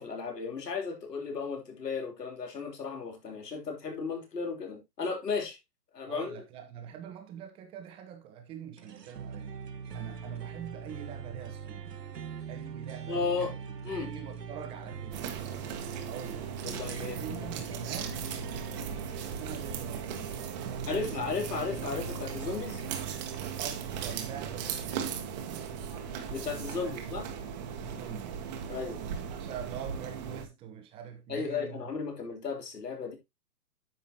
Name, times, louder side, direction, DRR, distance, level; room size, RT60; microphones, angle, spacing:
voice 1, 0.0-5.6 5.9-6.4 13.1-13.5 13.8-14.1 16.6-17.5 20.8-22.8 26.3-27.2 28.7-29.0 31.3-33.2, left 5 dB, 85° left, 3.4 m, -35 dB
voice 2, 6.1-9.5 9.9-12.0 12.5-13.5 13.9-15.3 16.0-16.5 17.0-18.2 19.1-21.3 23.6-25.6 26.7-27.2 27.5-28.4 29.0-31.9, right 8 dB, 10° right, 0.9 m, -44 dB
sound 1, 8.8-25.1, right 6 dB, 90° right, 1.4 m, -42 dB
sound 2, 15.1-30.5, right 7 dB, 25° right, 1.3 m, -38 dB
9.9 x 7.1 x 2.8 m
hypercardioid pair, 155°, 47 cm